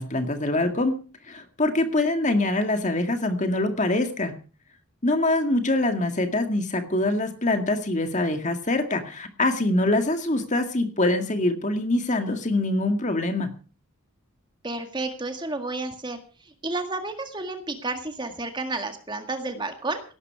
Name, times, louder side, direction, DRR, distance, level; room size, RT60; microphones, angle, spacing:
voice 1, 0.0-4.4 5.0-13.5, left 2 dB, 35° left, 6 dB, 2.0 m, -24 dB
voice 2, 14.6-16.2 16.6-20.0, right 2 dB, 20° right, 6 dB, 1.9 m, -31 dB
17.5 x 12.5 x 4.8 m, 0.37 s
head